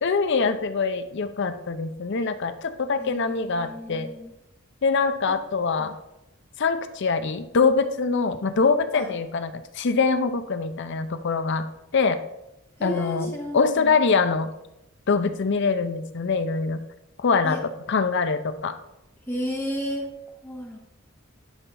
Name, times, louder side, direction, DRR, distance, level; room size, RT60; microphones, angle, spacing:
voice 1, 0.0-4.1 4.8-5.9 6.6-11.7 11.9-12.2 12.8-13.3 13.5-14.5 15.1-16.8 17.2-17.6 17.9-18.8, left 4 dB, 55° left, 11 dB, 0.6 m, -24 dB
voice 2, 3.0-4.3 5.8-5.9 8.9-9.1 12.8-14.0 17.4-17.6 19.3-20.1 20.4-20.9, equal, 10° left, 0 dB, 0.8 m, -33 dB
11.0 x 3.8 x 4.1 m, 0.88 s
head